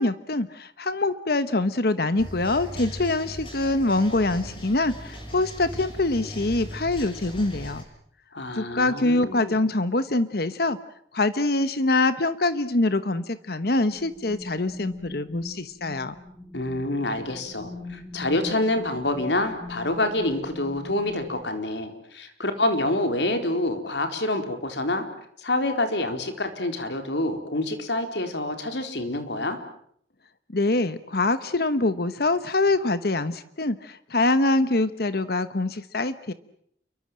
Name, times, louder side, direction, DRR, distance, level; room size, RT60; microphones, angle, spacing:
voice 1, 0.0-7.8 8.5-10.8 11.1-16.1 30.5-36.3, left 2 dB, 60° left, 12 dB, 1.1 m, -24 dB
sound 1, 2.2-7.8, equal, 30° left, 7.5 m, -38 dB
voice 2, 8.3-9.5 16.5-25.0 25.4-29.6, left 1 dB, 85° left, 6 dB, 4.3 m, -27 dB
sound 2, 13.9-21.4, left 2 dB, 10° left, 1.7 m, -42 dB
29.5 x 24.0 x 7.6 m, 0.67 s
head